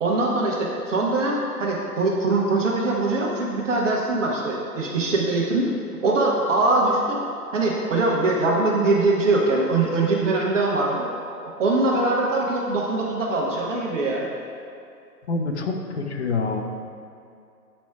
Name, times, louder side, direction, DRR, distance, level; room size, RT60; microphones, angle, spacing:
voice 1, 0.0-5.7 6.0-7.2 7.5-11.1 11.4-14.2, right 2 dB, 50° right, -3 dB, 1.0 m, -22 dB
voice 2, 15.3-16.6, left 3 dB, 45° left, 4 dB, 0.5 m, -26 dB
8.4 x 3.1 x 4.6 m, 2.5 s
hypercardioid pair, 140°, 49 cm